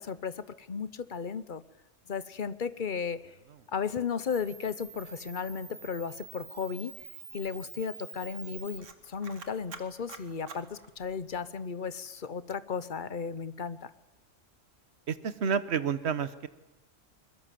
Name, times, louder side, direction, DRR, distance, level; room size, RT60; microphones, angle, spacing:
voice 1, 0.0-1.6 2.1-3.3 3.7-7.0 7.3-13.9, left 6 dB, 45° left, 15 dB, 1.0 m, -35 dB
Camera, 4.3-11.4, right 5 dB, 75° right, 1.9 m, -47 dB
voice 2, 15.1-16.5, right 6 dB, 60° right, 14 dB, 1.3 m, -30 dB
23.0 x 21.5 x 7.6 m, 1.0 s
omnidirectional pair, 1.3 m